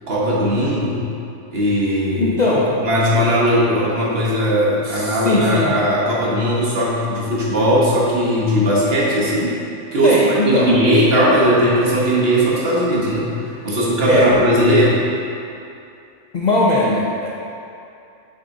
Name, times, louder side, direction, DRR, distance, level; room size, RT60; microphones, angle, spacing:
voice 1, 0.1-1.1 1.5-2.4 2.8-9.5 9.9-10.2 10.4-15.0, equal, 50° right, -6 dB, 1.4 m, -18 dB
voice 2, 2.2-2.7 4.8-5.7 10.0-10.7 14.1-14.3 16.3-17.3, left 2 dB, 50° left, -5 dB, 0.5 m, -19 dB
6.6 x 6.3 x 2.7 m, 2.6 s
omnidirectional pair, 1.3 m